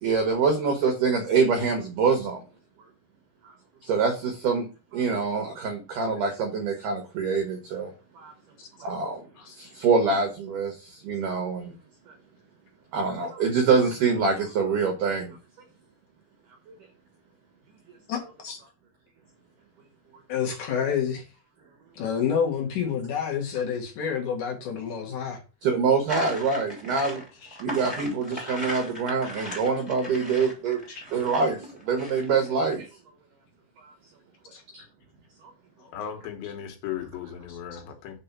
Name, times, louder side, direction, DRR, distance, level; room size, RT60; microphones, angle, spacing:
voice 1, 0.0-2.4 3.4-3.5 3.8-4.7 4.9-7.9 8.2-8.3 8.8-9.2 9.6-11.7 12.9-15.4 25.6-27.2 27.6-30.8 31.1-32.9 34.7-34.8, right 5 dB, 85° right, 1.8 m, -25 dB
voice 2, 9.4-9.7 18.1-18.6 20.3-21.2 22.0-25.4 27.4-27.6 28.3-28.6 30.9-31.0 34.5-34.6, left 7 dB, 60° left, 2.3 m, -29 dB
sound 1, 26.1-32.7, equal, 5° right, 1.6 m, -37 dB
voice 3, 35.9-38.2, left 9 dB, 75° left, 3.3 m, -36 dB
6.8 x 3.7 x 5.8 m
omnidirectional pair, 5.2 m